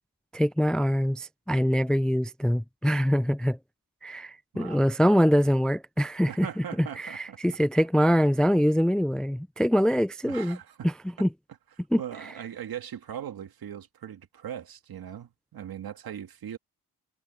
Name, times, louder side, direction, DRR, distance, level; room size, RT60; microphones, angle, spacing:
voice 1, 0.3-3.6 4.0-10.6 10.8-10.9 11.2-11.3 11.9-12.0, equal, ahead, 0.4 m, -24 dB
voice 2, 4.5-4.9 6.3-7.4 10.3-10.9 12.0-16.6, right 9 dB, 65° right, 2.2 m, -39 dB
wide cardioid pair, 135°, 39 cm